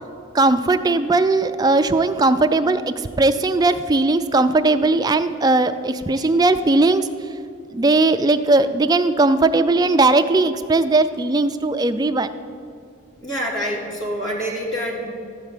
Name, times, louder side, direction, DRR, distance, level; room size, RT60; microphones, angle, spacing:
voice 1, 0.3-7.1 7.7-12.3, right 2 dB, 20° right, 9 dB, 0.3 m, -18 dB
voice 2, 13.2-15.1, equal, 75° left, -2 dB, 2.5 m, -27 dB
13.0 x 4.5 x 8.3 m, 2.4 s
head